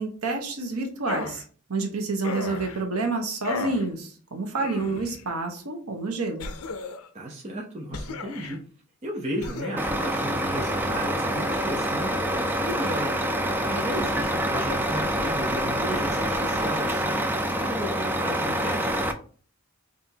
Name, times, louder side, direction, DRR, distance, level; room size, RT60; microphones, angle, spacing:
voice 1, 0.0-1.4 1.7-6.5, right 3 dB, 85° right, 3 dB, 1.0 m, -29 dB
sound 1, 1.1-1.4 2.2-2.8 3.4-3.9 4.6-5.2 6.4-7.1 7.9-8.6 9.4-9.9, left 4 dB, 80° left, 0.5 m, -34 dB
voice 2, 7.1-8.6 9.0-19.0, equal, 30° right, -2 dB, 0.7 m, -34 dB
Truck, 9.8-19.1, right 1 dB, 10° right, 0.3 m, -26 dB
5.5 x 2.5 x 2.8 m, 0.43 s
head